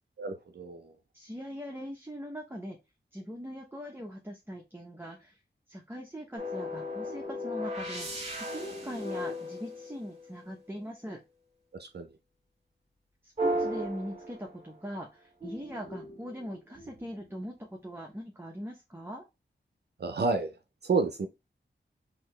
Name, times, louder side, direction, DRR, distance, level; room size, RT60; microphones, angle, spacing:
voice 1, 0.2-0.9 11.8-12.1 20.0-20.5 20.8-21.3, right 4 dB, 60° right, 0.5 m, -30 dB
voice 2, 1.1-2.8 3.1-5.4 5.7-11.2 13.2-19.2, equal, 10° right, 0.7 m, -41 dB
sound 1, 6.4-10.5 13.4-14.9 15.4-17.2, equal, 35° right, 1.4 m, -36 dB
4.0 x 2.7 x 3.1 m
wide cardioid pair, 75°, 19 cm